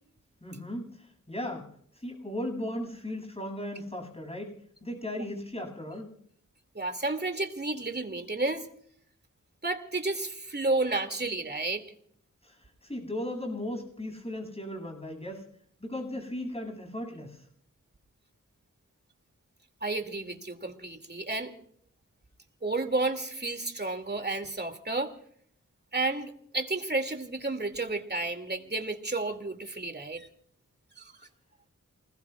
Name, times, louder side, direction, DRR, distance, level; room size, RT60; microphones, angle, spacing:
voice 1, 0.4-1.7 1.9-4.5 4.8-6.1 12.4-15.4 15.8-17.4, left 1 dB, 20° left, 2 dB, 8.0 m, -37 dB
voice 2, 6.7-8.7 9.6-11.8 19.8-21.5 22.6-25.1 25.9-30.3 31.0-31.1, right 2 dB, 30° right, 6 dB, 2.6 m, -31 dB
29.0 x 20.5 x 2.4 m, 0.65 s
cardioid pair, 50°, 32 cm